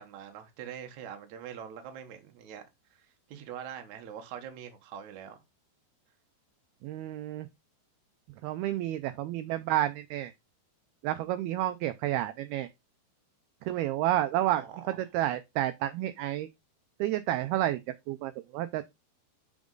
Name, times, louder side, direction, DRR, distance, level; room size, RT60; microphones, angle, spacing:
voice 1, 0.0-2.6 2.9-5.4 14.6-15.0, right 9 dB, 60° right, 2.0 m, -44 dB
voice 2, 6.8-7.5 8.4-10.3 11.0-12.7 13.6-16.5 17.0-17.8 18.1-18.8, right 14 dB, 80° right, 2.3 m, -30 dB
6.9 x 6.3 x 3.8 m
omnidirectional pair, 4.9 m